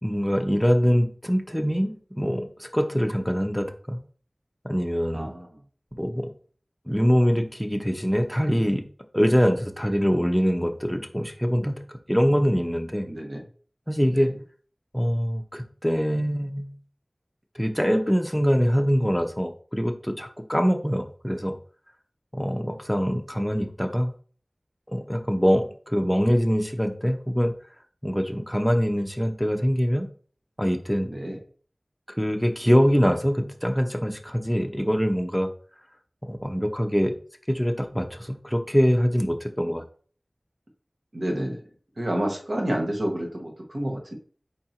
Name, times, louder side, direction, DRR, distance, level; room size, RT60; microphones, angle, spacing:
voice 1, 0.0-4.0 4.6-5.3 6.0-6.3 6.9-8.8 9.1-13.1 13.9-14.3 14.9-16.8 17.5-21.6 22.3-24.1 24.9-27.5 28.0-30.1 30.6-31.1 32.1-35.5 36.2-37.1 37.5-39.8, equal, 5° left, 5 dB, 0.6 m, -24 dB
voice 2, 5.1-5.5 13.1-13.4 14.1-14.3 31.1-31.4 41.1-41.6 42.0-44.2, right 1 dB, 70° right, 0 dB, 1.2 m, -29 dB
4.7 x 2.6 x 4.3 m, 0.44 s
wide cardioid pair, 50°, 0 cm